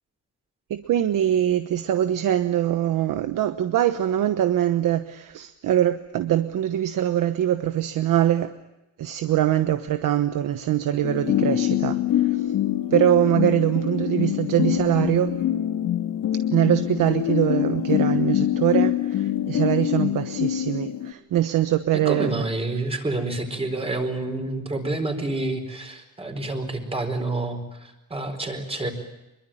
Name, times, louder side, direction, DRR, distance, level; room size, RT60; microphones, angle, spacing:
voice 1, 0.7-8.5 9.0-12.5 12.9-15.4 16.5-22.4, right 11 dB, 90° right, 9 dB, 1.1 m, -23 dB
sound 1, 11.0-21.1, left 12 dB, 90° left, 2.0 m, -24 dB
voice 2, 22.0-28.9, right 2 dB, 20° right, 5 dB, 4.3 m, -28 dB
25.5 x 23.0 x 9.0 m, 0.96 s
wide cardioid pair, 160°, 31 cm